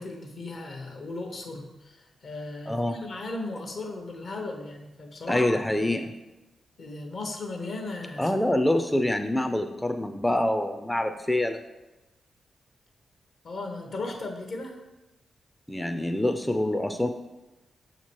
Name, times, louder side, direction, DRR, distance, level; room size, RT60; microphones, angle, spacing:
voice 1, 0.0-5.8 6.8-8.3 13.4-14.8, left 2 dB, 65° left, 3 dB, 0.8 m, -36 dB
voice 2, 2.7-3.0 5.3-6.1 8.2-11.6 15.7-17.1, left 1 dB, 10° left, 7 dB, 0.3 m, -26 dB
6.0 x 2.9 x 3.0 m, 1.0 s
supercardioid pair, 45°, 0 cm